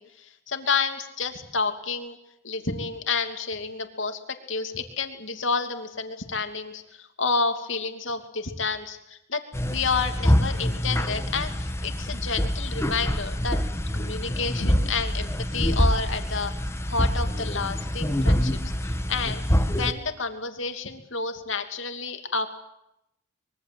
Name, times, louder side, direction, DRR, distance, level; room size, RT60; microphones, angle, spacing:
voice 1, 0.0-2.2 2.4-4.2 4.5-13.6 13.9-16.5 16.9-18.6 19.1-19.4 19.7-22.5, left 4 dB, 65° left, 6 dB, 2.8 m, -30 dB
sound 1, 9.5-19.9, equal, 15° left, 1.5 m, -25 dB
25.0 x 23.0 x 7.9 m, 0.83 s
head